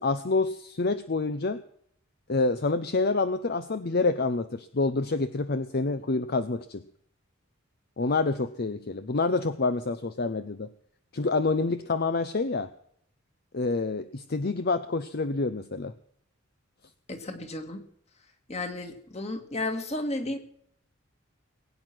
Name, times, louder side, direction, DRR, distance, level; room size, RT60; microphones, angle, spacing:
voice 1, 0.0-1.6 2.3-6.8 8.0-10.7 11.1-12.7 13.5-15.9, left 3 dB, 50° left, 11 dB, 0.7 m, -27 dB
voice 2, 17.1-17.8 18.5-20.4, left 2 dB, 35° left, 6 dB, 2.1 m, -33 dB
21.0 x 9.2 x 6.1 m, 0.68 s
head